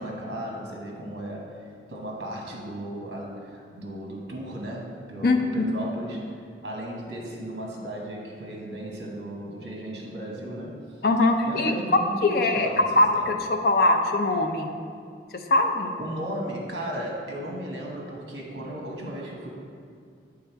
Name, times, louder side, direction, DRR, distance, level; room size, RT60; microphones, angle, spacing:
voice 1, 0.0-1.6 1.9-6.2 6.6-10.8 11.5-13.3 16.0-19.5, right 1 dB, 65° right, -2 dB, 1.1 m, -35 dB
voice 2, 11.0-11.7 12.2-14.7 15.5-15.9, left 2 dB, 55° left, 5 dB, 0.5 m, -22 dB
7.7 x 3.6 x 4.5 m, 2.2 s
head